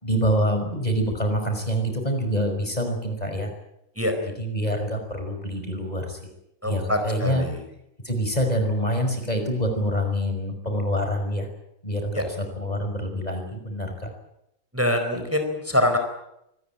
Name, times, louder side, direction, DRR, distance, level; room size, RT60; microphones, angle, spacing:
voice 1, 0.0-3.5 4.2-6.3 6.6-7.5 8.0-11.5 11.8-14.1 15.1-15.2, equal, 25° left, 4 dB, 5.4 m, -26 dB
voice 2, 6.6-7.6 12.1-12.2 14.7-16.0, left 1 dB, 10° right, 5 dB, 4.4 m, -24 dB
25.5 x 19.5 x 9.0 m, 0.83 s
omnidirectional pair, 1.5 m